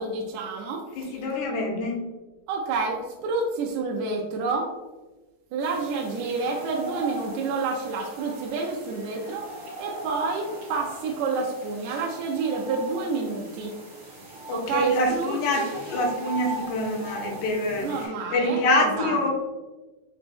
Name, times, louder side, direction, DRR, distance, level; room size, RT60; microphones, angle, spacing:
voice 1, 0.0-1.2 2.5-4.7 5.5-9.4 9.8-13.7 14.5-15.7 17.8-19.1, right 4 dB, 80° right, 1 dB, 1.8 m, -29 dB
voice 2, 1.0-2.0 14.5-19.3, left 1 dB, 75° left, 1 dB, 2.1 m, -25 dB
sound 1, 5.6-18.1, right 2 dB, 45° right, 1.8 m, -40 dB
5.1 x 2.9 x 3.3 m, 1.2 s
omnidirectional pair, 3.5 m